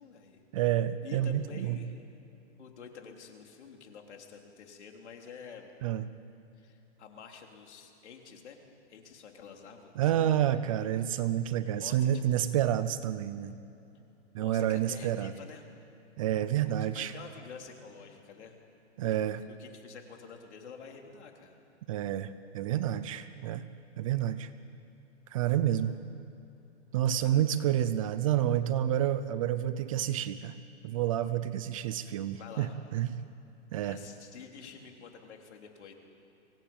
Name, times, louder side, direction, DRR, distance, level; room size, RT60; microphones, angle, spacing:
voice 1, 0.0-0.4 1.0-2.0 2.6-5.7 6.6-8.6 8.9-10.5 11.7-12.2 14.4-15.6 16.8-18.6 19.2-21.6 25.7-26.0 27.2-27.7 32.3-32.8 33.8-35.9, left 6 dB, 70° left, 2 dB, 3.8 m, -49 dB
voice 2, 0.5-1.8 5.8-6.1 10.0-13.5 14.3-15.3 16.2-17.1 19.0-19.4 21.9-23.7 24.0-24.5 25.3-25.9 26.9-30.5 30.8-33.1 33.7-34.0, right 11 dB, 30° right, 13 dB, 0.6 m, -29 dB
24.5 x 18.0 x 8.9 m, 2.8 s
hypercardioid pair, 160°, 36 cm